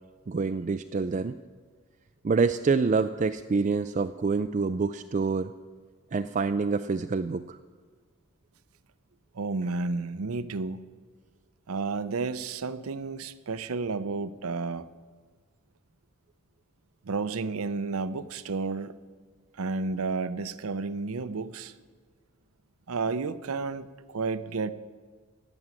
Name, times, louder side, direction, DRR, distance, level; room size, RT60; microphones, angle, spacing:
voice 1, 0.3-1.3 2.2-5.5 6.1-7.6, right 4 dB, 35° right, 9 dB, 0.3 m, -26 dB
voice 2, 9.3-10.8 11.7-14.9 17.0-19.0 19.6-21.7 22.9-24.7, right 4 dB, 80° right, 15 dB, 0.6 m, -31 dB
16.0 x 6.2 x 9.6 m, 1.5 s
head